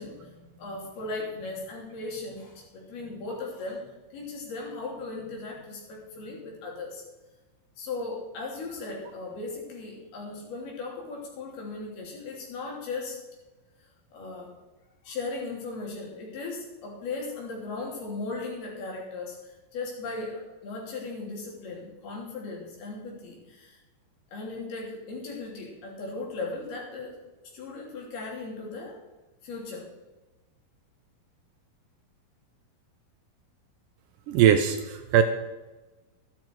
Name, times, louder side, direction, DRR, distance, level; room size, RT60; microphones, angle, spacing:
voice 1, 0.0-7.0 7.8-13.2 14.1-14.5 15.0-23.8 24.3-27.1 27.4-29.0 29.4-29.8, left 3 dB, 85° left, -2 dB, 5.0 m, -37 dB
voice 2, 34.3-35.2, right 9 dB, 80° right, 7 dB, 2.0 m, -20 dB
13.5 x 12.0 x 4.6 m, 1.1 s
omnidirectional pair, 4.4 m